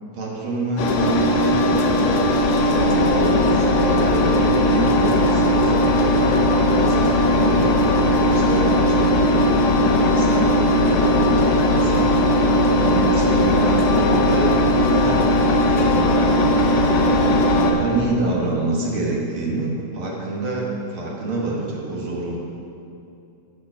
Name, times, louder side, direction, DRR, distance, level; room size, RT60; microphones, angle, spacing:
voice 1, 0.1-6.1 6.6-22.4, right 2 dB, 50° right, -3 dB, 1.8 m, -27 dB
Engine, 0.8-17.7, left 1 dB, 85° left, 2.5 m, -18 dB
15.0 x 5.2 x 5.5 m, 2.7 s
omnidirectional pair, 3.7 m